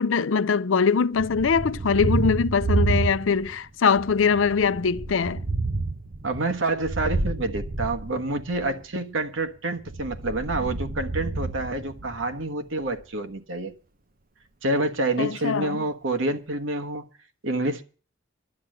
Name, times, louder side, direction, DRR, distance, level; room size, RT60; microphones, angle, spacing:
voice 1, 0.0-5.4 15.2-15.8, left 5 dB, 90° left, 0.5 m, -22 dB
Thunder, 1.2-3.6 3.9-8.7 9.8-12.4, right 3 dB, 45° right, 0.9 m, -29 dB
voice 2, 6.2-13.7 14.6-17.0 17.4-17.8, right 2 dB, 90° right, 1.3 m, -28 dB
11.5 x 8.6 x 7.8 m
head